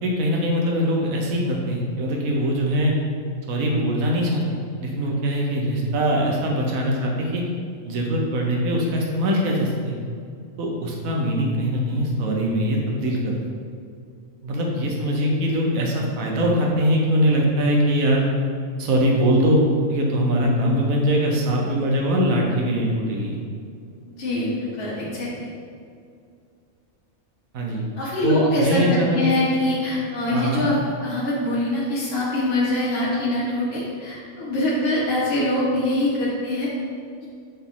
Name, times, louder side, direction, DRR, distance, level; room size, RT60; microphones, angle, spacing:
voice 1, 0.0-2.9 3.5-7.4 7.8-9.9 10.6-13.4 14.4-18.3 18.8-19.6 19.9-23.4 27.5-27.8 28.2-29.4 30.3-30.7, equal, 85° right, -1 dB, 1.3 m, -22 dB
voice 2, 24.1-25.5 28.0-36.7, left 1 dB, 50° left, -8 dB, 1.6 m, -24 dB
7.0 x 4.0 x 3.8 m, 2.3 s
omnidirectional pair, 1.4 m